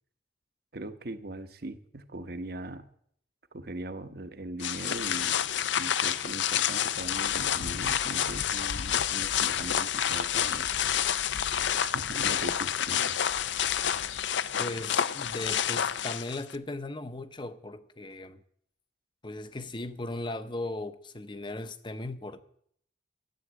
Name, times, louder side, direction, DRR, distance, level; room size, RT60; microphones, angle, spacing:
voice 1, 0.7-2.9 3.5-5.4 5.8-10.7 11.8-13.2, right 2 dB, 50° right, 1.0 m, -40 dB
sound 1, 4.6-16.5, left 9 dB, 70° left, 0.5 m, -29 dB
voice 2, 14.6-18.4 19.2-22.4, left 2 dB, 25° left, 0.7 m, -37 dB
13.0 x 8.6 x 8.0 m
head